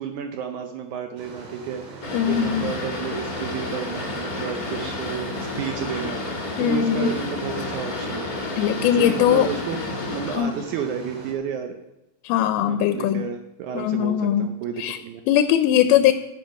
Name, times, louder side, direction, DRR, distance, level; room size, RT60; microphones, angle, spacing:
voice 1, 0.0-6.2 6.6-8.3 8.8-9.8 10.1-11.8 12.6-15.2 15.9-16.1, right 8 dB, 85° right, 5 dB, 1.7 m, -32 dB
sound 1, 1.2-11.3, right 3 dB, 60° right, 3.2 m, -41 dB
Boat Water vehicle, 2.0-10.4, left 2 dB, 35° left, 1.5 m, -31 dB
voice 2, 2.1-2.7 6.6-7.2 8.6-9.5 10.3-10.5 12.2-13.3 13.7-14.5 14.8-15.0 15.3-16.1, left 10 dB, 85° left, 9 dB, 2.4 m, -20 dB
9.4 x 9.4 x 5.2 m, 0.91 s
omnidirectional pair, 4.4 m